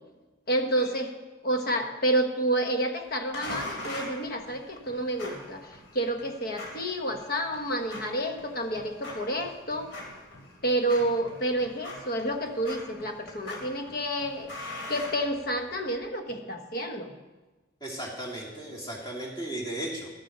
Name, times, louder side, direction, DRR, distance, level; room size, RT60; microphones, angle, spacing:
voice 1, 0.5-1.1 1.4-9.9 10.6-17.1, right 1 dB, 50° left, 5 dB, 1.1 m, -29 dB
sound 1, 3.3-15.8, left 1 dB, 80° left, 3.0 m, -42 dB
voice 2, 17.8-20.1, right 1 dB, 20° left, -3 dB, 2.5 m, -35 dB
13.0 x 7.7 x 5.3 m, 1.2 s
head